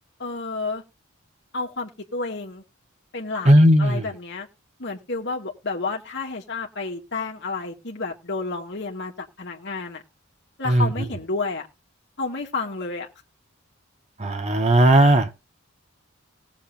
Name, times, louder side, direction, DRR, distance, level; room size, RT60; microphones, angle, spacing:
voice 1, 0.2-0.8 1.5-2.6 3.1-3.5 3.8-4.5 4.8-10.0 10.6-11.7 12.2-13.1, left 3 dB, 55° left, 2.3 m, -30 dB
voice 2, 3.5-4.0 10.7-10.9 14.2-15.3, right 1 dB, 30° right, 1.2 m, -16 dB
19.0 x 7.3 x 2.7 m
head